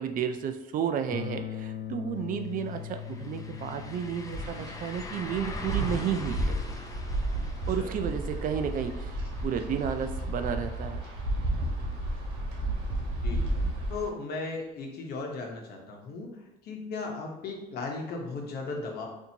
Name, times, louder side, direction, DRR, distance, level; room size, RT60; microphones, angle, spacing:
voice 1, 0.0-6.5 7.7-11.0, right 8 dB, 55° right, 8 dB, 0.4 m, -32 dB
sound 1, 1.1-11.0, left 10 dB, 85° left, 0.4 m, -43 dB
sound 2, 2.1-2.2 2.5-12.3 12.6-12.7 15.5-15.6, left 2 dB, 20° left, 0.4 m, -44 dB
Wind, 4.3-14.1, right 1 dB, 75° right, 1.2 m, -32 dB
voice 2, 13.9-16.3 16.6-19.1, left 3 dB, 70° left, 0 dB, 0.9 m, -36 dB
4.3 x 2.7 x 2.8 m, 0.99 s
cardioid pair, 110°, 17 cm